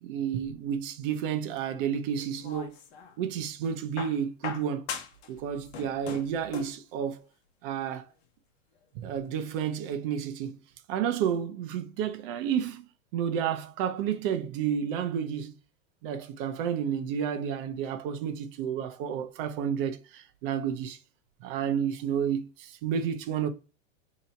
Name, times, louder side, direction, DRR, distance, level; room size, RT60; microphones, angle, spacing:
voice 1, 0.0-2.8 3.2-4.8 5.3-7.3 7.6-8.1 8.9-10.6 10.9-12.8 13.1-15.6 16.0-21.0 21.4-23.5, right 8 dB, 45° right, 0.7 m, -31 dB
sound 1, 2.2-3.2 4.0-5.3 5.6-6.8 7.9-8.0, left 6 dB, 50° left, 0.9 m, -39 dB
2.9 x 2.8 x 4.2 m
hypercardioid pair, 125°, 39 cm